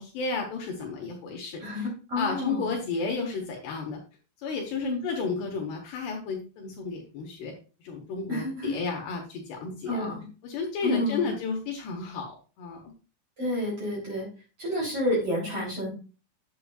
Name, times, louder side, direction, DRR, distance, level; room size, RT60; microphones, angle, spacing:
voice 1, 0.0-1.9 2.2-4.0 4.4-7.5 7.8-10.1 10.4-12.8, left 4 dB, 70° left, 0 dB, 2.9 m, -32 dB
voice 2, 1.6-2.8 4.8-5.0 8.3-8.8 9.9-10.3 10.8-11.3 13.4-14.3 14.6-15.9, left 1 dB, 35° right, -4 dB, 3.5 m, -29 dB
8.7 x 8.2 x 2.3 m, 0.34 s
omnidirectional pair, 5.6 m